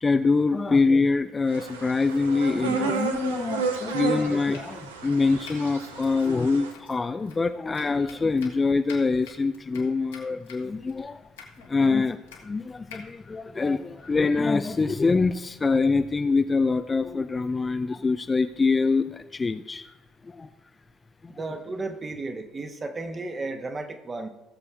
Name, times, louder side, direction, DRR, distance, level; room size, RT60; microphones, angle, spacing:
voice 1, 0.0-11.2 11.7-12.2 12.4-19.9 20.3-20.5 21.2-21.3, left 4 dB, 25° left, 10 dB, 0.5 m, -24 dB
sound 1, 1.5-6.7, right 5 dB, 80° right, 0.8 m, -32 dB
Domestic sounds home sounds, 3.7-14.4, left 5 dB, 80° left, 1.6 m, -51 dB
voice 2, 21.3-24.3, right 3 dB, 30° right, 6 dB, 1.4 m, -34 dB
18.0 x 6.9 x 3.5 m, 1.0 s
figure-of-eight pair, 55°, 0 cm